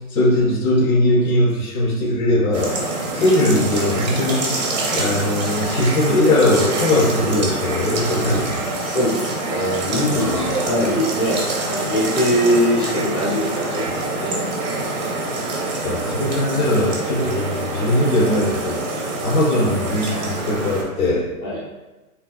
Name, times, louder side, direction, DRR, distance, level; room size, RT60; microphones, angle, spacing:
voice 1, 0.0-2.8 3.1-4.5 4.9-8.6 10.1-10.6 15.8-18.8 19.2-21.3, left 1 dB, 70° left, -1 dB, 0.8 m, -20 dB
sound 1, 2.5-20.8, right 2 dB, 30° right, 0.5 m, -26 dB
voice 2, 8.8-14.4 21.4-21.6, equal, 15° left, -7 dB, 0.6 m, -22 dB
3.3 x 2.7 x 2.3 m, 1.1 s
hypercardioid pair, 140°, 45 cm